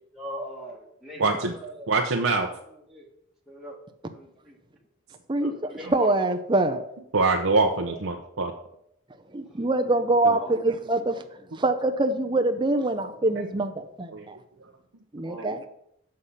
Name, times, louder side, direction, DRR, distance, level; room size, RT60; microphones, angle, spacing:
voice 1, 0.2-1.2 1.6-1.9 2.9-3.0 3.5-3.8 4.1-4.5 5.4-6.1 10.4-10.6 15.2-15.6, equal, ahead, 1.4 m, -39 dB
voice 2, 1.2-1.5 1.9-2.5 7.1-8.5 10.3-10.4 14.1-14.3 15.4-15.5, right 3 dB, 75° right, 0.8 m, -24 dB
voice 3, 5.3-6.8 9.3-11.2 11.5-14.4 15.1-15.7, right 2 dB, 25° right, 0.6 m, -25 dB
8.2 x 6.6 x 5.6 m
head